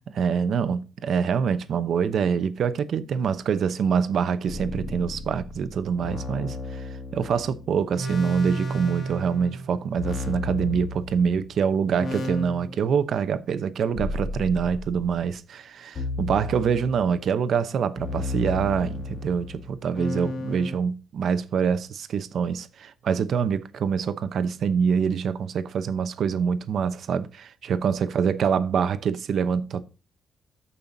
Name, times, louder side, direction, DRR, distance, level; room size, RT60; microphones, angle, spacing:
voice 1, 0.0-29.8, right 6 dB, 60° right, 0.8 m, -25 dB
sound 1, 4.5-11.5 12.0-13.1 13.9-15.1 16.0-17.2 18.0-20.8, left 1 dB, 50° left, 2.2 m, -33 dB
14.0 x 5.6 x 2.7 m
wide cardioid pair, 160°, 0 cm